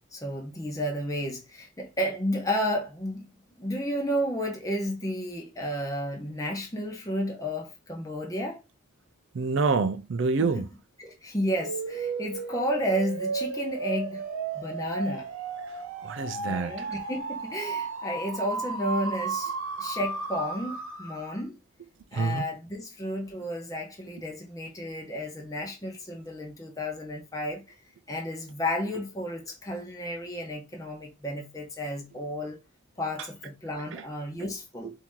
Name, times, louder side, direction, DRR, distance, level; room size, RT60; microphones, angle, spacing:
voice 1, 0.1-3.3 3.6-8.6 10.4-10.6 11.0-14.2 14.5-15.3 16.4-19.5 19.8-21.6 22.1-27.8 28.1-32.6 33.0-34.9, equal, 15° left, 1.0 m, -32 dB
voice 2, 9.3-10.7 16.0-16.9 22.1-22.4 33.9-34.0, right 4 dB, 60° right, 0.4 m, -27 dB
sound 1, 11.6-21.4, right 4 dB, 80° right, 1.1 m, -34 dB
4.4 x 2.8 x 3.6 m
head